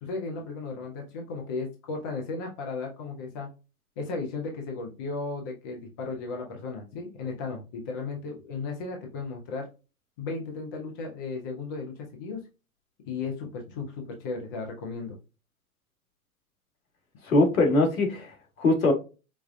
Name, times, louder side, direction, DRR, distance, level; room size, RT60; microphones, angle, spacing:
voice 1, 0.0-3.5 4.0-9.7 10.2-12.4 13.0-15.2, left 4 dB, 15° left, 2 dB, 0.4 m, -35 dB
voice 2, 17.2-18.9, left 2 dB, 65° left, 2 dB, 2.0 m, -22 dB
5.0 x 2.2 x 2.5 m, 0.30 s
hypercardioid pair, 125°, 44 cm